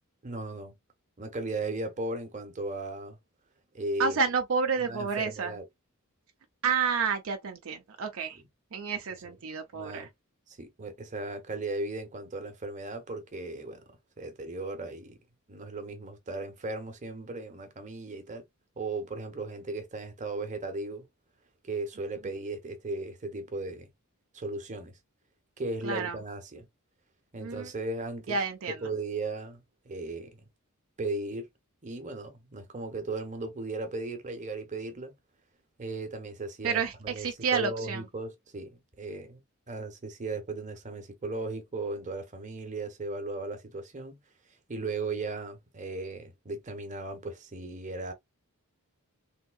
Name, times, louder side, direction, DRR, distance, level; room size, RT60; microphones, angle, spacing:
voice 1, 0.2-0.8 1.2-3.2 3.7-4.2 4.8-5.6 8.3-8.4 9.2-9.3 9.7-10.1 10.6-13.8 14.2-15.2 15.5-18.4 18.8-21.0 21.7-23.9 24.3-25.0 25.6-26.7 27.3-28.4 28.7-30.4 31.0-31.5 31.8-35.1 35.8-39.4 39.7-44.2 44.7-48.1, right 2 dB, 35° right, 0.8 m, -36 dB
voice 2, 4.0-5.5 6.6-8.4 8.7-10.1 25.8-26.2 27.4-27.7 28.3-28.8 36.6-38.0, right 5 dB, 65° right, 0.5 m, -30 dB
3.5 x 2.7 x 2.3 m
head